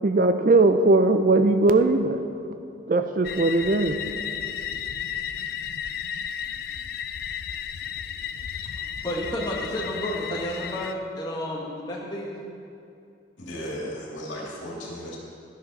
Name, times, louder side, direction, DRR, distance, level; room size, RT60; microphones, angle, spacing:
voice 1, 0.0-2.2 2.9-4.0, right 2 dB, 45° right, 8 dB, 0.4 m, -19 dB
sound 1, 3.2-10.9, left 8 dB, 50° left, 0.3 m, -33 dB
voice 2, 9.0-12.4, equal, 20° left, -3 dB, 1.4 m, -31 dB
voice 3, 13.4-15.2, equal, 75° left, -3 dB, 2.4 m, -35 dB
11.5 x 10.5 x 4.1 m, 2.7 s
head